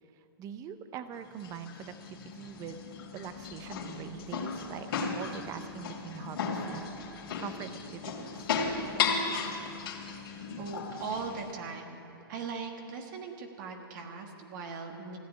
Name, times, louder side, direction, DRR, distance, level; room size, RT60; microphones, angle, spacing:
voice 1, 0.1-2.8 3.1-6.9 7.4-8.5, right 8 dB, 25° right, 11 dB, 0.7 m, -43 dB
sound 1, 1.1-11.5, left 5 dB, 70° left, 2.6 m, -35 dB
voice 2, 10.6-12.0 12.3-15.2, right 5 dB, 55° right, 3 dB, 1.5 m, -39 dB
15.5 x 8.0 x 9.7 m, 3.0 s
hypercardioid pair, 130°, 13 cm